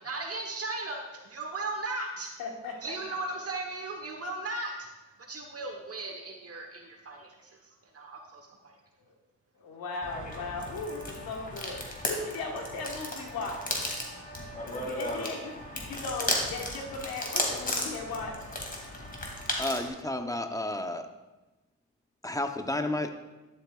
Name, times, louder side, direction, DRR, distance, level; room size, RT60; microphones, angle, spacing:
voice 1, 0.0-2.3 2.8-4.9 5.2-8.8, right 2 dB, 45° right, 2 dB, 1.2 m, -37 dB
voice 2, 2.4-3.2 9.0-9.1 9.6-11.8 12.0-13.6 14.7-18.3, left 3 dB, 90° left, 1 dB, 1.5 m, -37 dB
sound 1, 10.0-19.9, left 1 dB, 25° left, 2.2 m, -35 dB
voice 3, 19.6-21.1 22.2-23.1, left 1 dB, 10° left, 6 dB, 0.8 m, -31 dB
11.5 x 8.1 x 2.4 m, 1.1 s
supercardioid pair, 60°, 35 cm